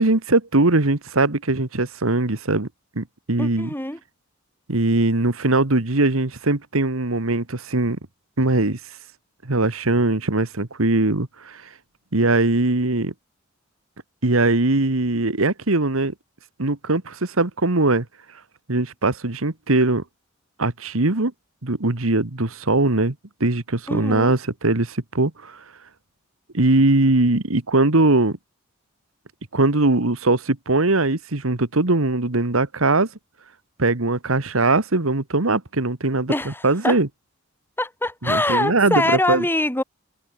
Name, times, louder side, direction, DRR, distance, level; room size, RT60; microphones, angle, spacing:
voice 1, 0.0-2.7 2.9-3.7 4.7-8.0 8.4-8.8 9.4-11.6 12.1-13.1 14.2-16.1 16.6-18.0 18.7-20.0 20.6-21.3 21.6-23.1 23.4-25.6 26.5-28.4 29.5-33.1 33.8-37.1 38.2-39.0 39.3-39.4, right 2 dB, 75° right, 1.8 m, -20 dB
voice 2, 3.4-4.0 23.9-24.3 36.3-37.0 37.8-39.8, left 1 dB, 10° left, 5.8 m, -23 dB
head